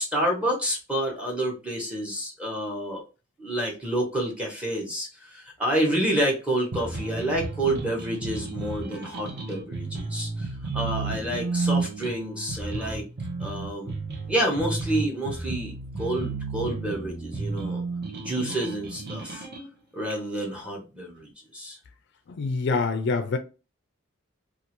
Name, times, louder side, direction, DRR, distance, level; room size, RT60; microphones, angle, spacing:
voice 1, 0.0-3.0 3.4-13.1 13.4-13.9 14.3-17.8 18.2-19.5 19.9-21.8, right 1 dB, 5° right, 0.9 m, -29 dB
sound 1, 6.7-19.7, right 3 dB, 55° right, 0.7 m, -32 dB
voice 2, 22.3-23.4, left 4 dB, 55° left, 0.4 m, -25 dB
2.6 x 2.4 x 2.9 m
head